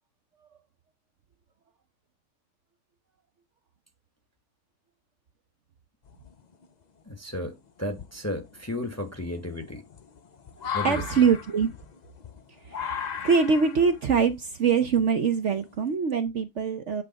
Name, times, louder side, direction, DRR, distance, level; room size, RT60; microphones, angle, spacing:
sound 1, 6.0-6.7 7.3-7.4 7.9-15.9, left 7 dB, 55° left, 0.5 m, -37 dB
voice 1, 7.1-9.8 10.7-11.0, left 1 dB, 10° left, 1.0 m, -33 dB
voice 2, 10.8-11.7 12.7-12.8 13.2-17.0, right 6 dB, 55° right, 0.9 m, -23 dB
8.3 x 3.2 x 5.2 m
omnidirectional pair, 1.6 m